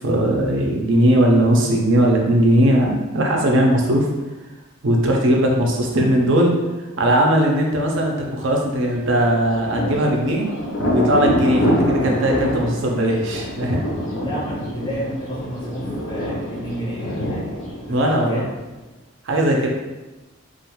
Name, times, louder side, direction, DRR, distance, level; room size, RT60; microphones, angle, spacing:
voice 1, 0.0-4.1 4.8-6.6 7.0-10.5 10.9-13.9 17.9-18.5 19.2-19.7, right 1 dB, 60° right, 0 dB, 0.5 m, -18 dB
Thunder, 9.2-18.7, equal, 60° left, 0.6 m, -25 dB
voice 2, 14.1-17.6 17.9-18.4, equal, 20° left, -5 dB, 0.6 m, -31 dB
2.4 x 2.3 x 2.9 m, 1.1 s
head